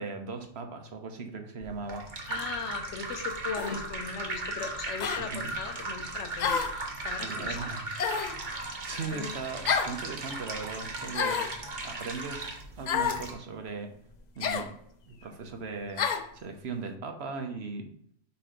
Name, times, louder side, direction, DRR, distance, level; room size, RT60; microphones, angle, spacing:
voice 1, 0.0-2.0 5.2-5.5 7.1-7.8 8.9-11.5 11.8-12.4 12.8-13.9 14.4-14.7 15.1-16.1 16.3-17.9, right 4 dB, 65° right, 6 dB, 1.1 m, -38 dB
sound 1, 1.6-13.3, right 2 dB, 45° right, 1.1 m, -37 dB
voice 2, 2.3-7.7 8.9-9.3 15.1-15.3, left 5 dB, 85° left, 6 dB, 1.2 m, -38 dB
sound 2, 3.6-3.8 5.0-5.2 6.4-6.8 8.0-8.4 9.7-10.0 11.1-11.6 12.9-13.2 14.4-14.7 16.0-16.3, left 6 dB, 55° left, 0.5 m, -29 dB
6.9 x 3.1 x 5.0 m, 0.67 s
omnidirectional pair, 1.2 m